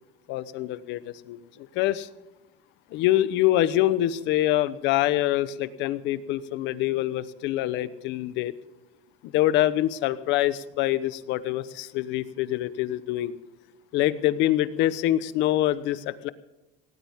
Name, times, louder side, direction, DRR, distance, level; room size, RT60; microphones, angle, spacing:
voice 1, 0.3-2.1 2.9-8.5 9.2-13.3 13.9-16.3, left 14 dB, 65° left, 15 dB, 0.9 m, -25 dB
18.5 x 17.5 x 3.6 m, 1.0 s
cardioid pair, 170°, 20 cm